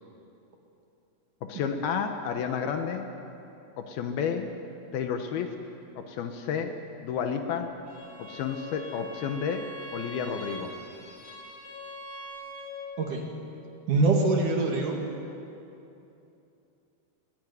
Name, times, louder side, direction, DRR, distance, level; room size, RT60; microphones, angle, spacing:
voice 1, 1.4-3.1 3.8-4.5 4.9-5.5 6.0-7.7 8.2-10.7, left 6 dB, 75° left, 6 dB, 2.6 m, -31 dB
Bowed string instrument, 7.8-13.0, left 1 dB, 25° left, 3.7 m, -42 dB
voice 2, 13.0-13.3 13.9-15.0, right 3 dB, 55° right, 1 dB, 3.0 m, -24 dB
22.0 x 15.5 x 9.3 m, 2.8 s
omnidirectional pair, 4.9 m